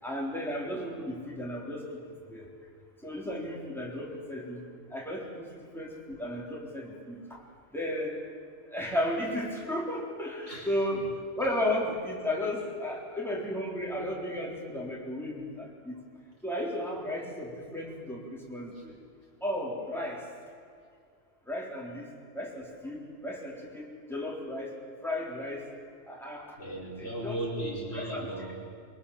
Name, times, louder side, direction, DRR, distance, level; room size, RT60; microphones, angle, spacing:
voice 1, 0.0-1.8 2.3-2.5 3.0-4.6 4.9-5.5 5.7-7.2 7.7-8.1 8.7-11.0 11.4-16.0 16.4-18.9 19.4-20.2 21.5-22.1 22.3-24.7 25.0-25.7 26.1-26.4 27.0-27.4 27.9-28.5, left 1 dB, ahead, -3 dB, 3.8 m, -34 dB
voice 2, 10.5-11.0 18.7-18.8 26.6-28.5, right 1 dB, 75° left, -4 dB, 5.2 m, -36 dB
23.5 x 23.0 x 7.2 m, 2.2 s
omnidirectional pair, 1.2 m